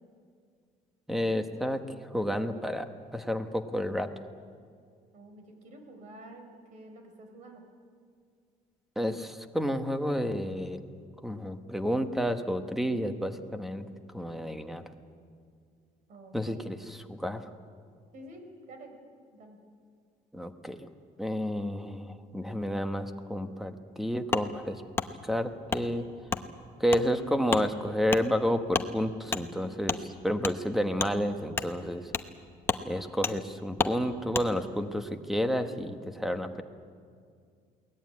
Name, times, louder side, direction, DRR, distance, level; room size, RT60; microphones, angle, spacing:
voice 1, 1.1-2.9 3.1-4.1 9.0-10.8 11.2-13.8 14.1-14.8 16.3-17.5 20.3-20.9 21.2-24.8 25.2-26.0 26.8-32.1 32.9-36.6, equal, ahead, 8 dB, 1.1 m, -30 dB
voice 2, 5.1-7.6 16.1-16.8 18.1-18.9 19.3-19.6, right 1 dB, 55° right, 5 dB, 4.5 m, -49 dB
Wood, 24.3-24.5 24.9-25.1 25.7-25.8 26.3-26.4 26.9-27.0 27.5-27.6 28.1-28.2 28.7-28.9 29.3-29.4 29.9-30.0 30.4-30.5 31.0-31.1 31.5-31.7 32.1-32.3 32.6-32.8 33.2-33.3 33.8-33.9 34.3-34.5, left 4 dB, 15° left, 0.8 m, -30 dB
22.0 x 18.5 x 9.6 m, 2.2 s
cardioid pair, 165°, 16 cm